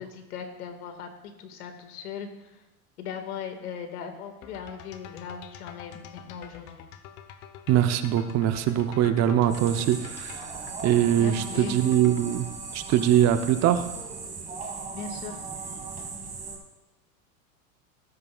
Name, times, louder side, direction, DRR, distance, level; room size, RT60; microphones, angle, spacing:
voice 1, 0.0-2.6 3.0-6.9 11.2-11.8 14.9-15.4, left 7 dB, 85° left, 6 dB, 2.0 m, -39 dB
sound 1, 4.4-12.3, left 9 dB, 45° left, 1.0 m, -47 dB
voice 2, 7.7-10.5 10.8-12.5 12.7-13.9, right 11 dB, 35° right, 9 dB, 0.8 m, -22 dB
sound 2, 9.5-16.6, right 4 dB, 15° right, 1.9 m, -38 dB
18.0 x 9.6 x 2.4 m, 1.0 s
supercardioid pair, 120°, 44 cm